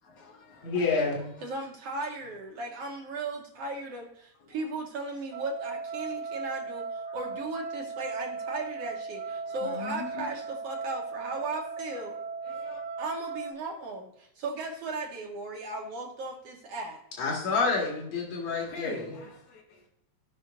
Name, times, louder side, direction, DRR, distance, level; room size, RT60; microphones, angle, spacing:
voice 1, 0.0-0.8 1.0-1.5 4.4-4.7 7.1-7.2 9.5-10.3 11.9-12.1 12.4-12.8 18.4-19.9, left 3 dB, 85° left, -1 dB, 3.0 m, -43 dB
voice 2, 0.6-1.3 17.2-19.0, left 4 dB, 60° left, -3 dB, 2.9 m, -28 dB
voice 3, 1.4-12.2 13.0-17.0, right 2 dB, 65° right, 1 dB, 1.9 m, -37 dB
sound 1, 5.3-13.5, right 4 dB, 85° right, 1.9 m, -37 dB
16.5 x 5.7 x 2.6 m, 0.75 s
omnidirectional pair, 3.3 m